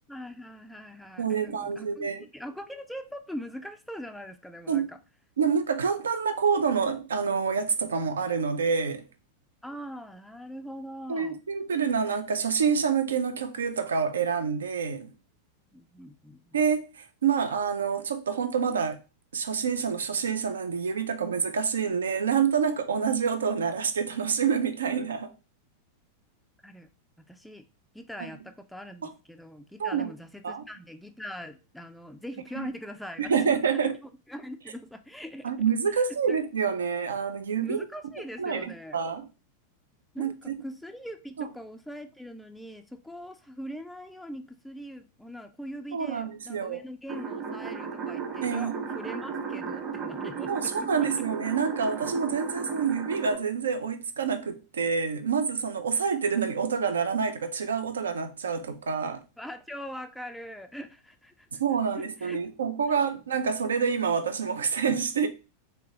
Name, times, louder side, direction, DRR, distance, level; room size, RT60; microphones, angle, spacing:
voice 1, 0.1-5.0 9.6-11.4 15.7-16.6 26.6-26.9 27.2-27.7 27.9-33.6 34.3-35.5 35.9-36.4 37.5-39.0 40.1-51.2 59.4-61.5 62.0-62.5, equal, ahead, 0.4 m, -42 dB
voice 2, 1.2-2.3 4.7-4.9 5.4-9.0 11.1-15.1 16.5-19.0 19.3-25.3 29.0-29.1 29.8-30.1 30.4-30.6 32.5-32.7 33.2-33.9 35.4-37.8 38.4-39.3 40.2-40.5 45.9-46.8 48.4-48.7 50.5-59.2 61.6-65.3, right 6 dB, 70° right, 0.5 m, -27 dB
sound 1, 47.1-53.4, right 6 dB, 35° right, 1.1 m, -35 dB
3.5 x 3.2 x 2.9 m
figure-of-eight pair, 90°, 0 cm